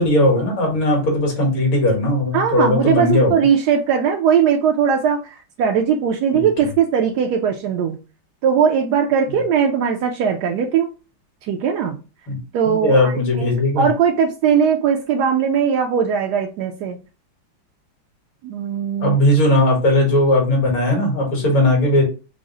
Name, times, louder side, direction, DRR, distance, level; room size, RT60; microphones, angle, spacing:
voice 1, 0.0-3.3 6.3-6.5 12.3-12.4 12.6-13.9 19.0-22.0, left 1 dB, 80° left, 0 dB, 2.4 m, -17 dB
voice 2, 2.3-7.9 8.4-10.9 11.4-12.0 12.5-17.0 18.4-19.2, right 7 dB, 75° right, 2 dB, 0.9 m, -19 dB
5.0 x 2.0 x 3.7 m, 0.32 s
omnidirectional pair, 2.2 m